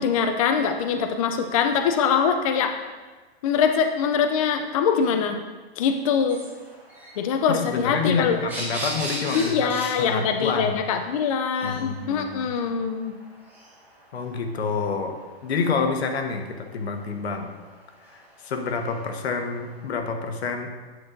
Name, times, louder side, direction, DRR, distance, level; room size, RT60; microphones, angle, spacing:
voice 1, 0.0-2.7 3.4-5.4 5.8-6.4 7.2-8.4 9.3-13.1, left 6 dB, 35° left, 6 dB, 0.4 m, -23 dB
sound 1, 6.3-19.6, right 1 dB, 5° right, 1.1 m, -40 dB
voice 2, 7.5-10.8 11.6-12.5 14.1-15.2 15.4-17.5 18.1-20.7, left 5 dB, 85° left, 5 dB, 1.1 m, -28 dB
9.3 x 6.1 x 2.6 m, 1.3 s
hypercardioid pair, 155°, 31 cm